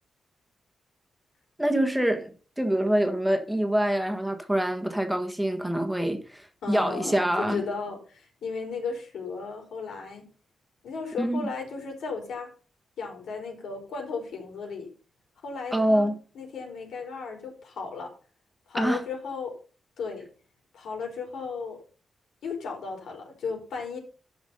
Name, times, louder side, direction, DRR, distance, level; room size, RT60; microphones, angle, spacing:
voice 1, 1.6-7.6 11.2-11.4 15.7-16.2 18.7-19.0, right 1 dB, 5° right, 1.4 m, -25 dB
voice 2, 6.6-10.2 10.8-12.5 13.0-14.9 15.4-16.1 16.3-18.1 18.7-19.6 20.0-20.3 20.7-21.8 22.4-24.0, left 4 dB, 90° left, 4.4 m, -35 dB
11.0 x 6.2 x 5.4 m
wide cardioid pair, 145°, 0 cm